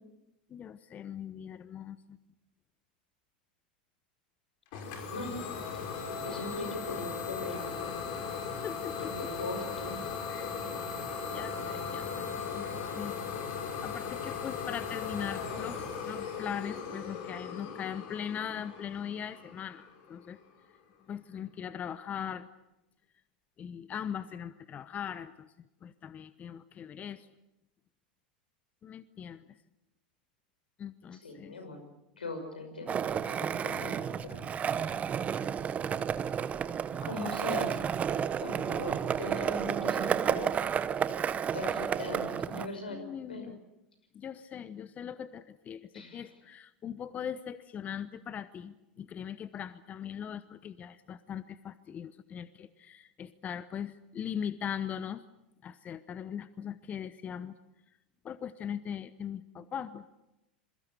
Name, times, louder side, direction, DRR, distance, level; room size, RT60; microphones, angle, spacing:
voice 1, 0.5-2.2 6.3-6.5 8.6-9.1 10.3-10.5 11.3-13.2 13.8-20.4 21.1-22.5 23.6-25.5 25.8-27.3 28.8-29.4 30.8-31.6 42.9-43.6 44.1-55.2 55.6-57.6 58.2-60.1, left 8 dB, 30° left, 14 dB, 1.0 m, -40 dB
Idling / Domestic sounds home sounds, 4.7-20.3, left 5 dB, 60° left, 5.7 m, -38 dB
voice 2, 6.2-8.1 9.0-10.1 31.2-31.8 32.2-34.4 34.8-35.0 37.0-37.9 38.4-40.5 41.5-43.0 43.3-43.5 45.9-46.3, left 2 dB, 90° left, 7 dB, 5.7 m, -40 dB
Skateboard, 32.9-42.7, right 8 dB, 30° right, 1.0 m, -31 dB
27.5 x 22.5 x 6.9 m, 0.91 s
hypercardioid pair, 95°, 5 cm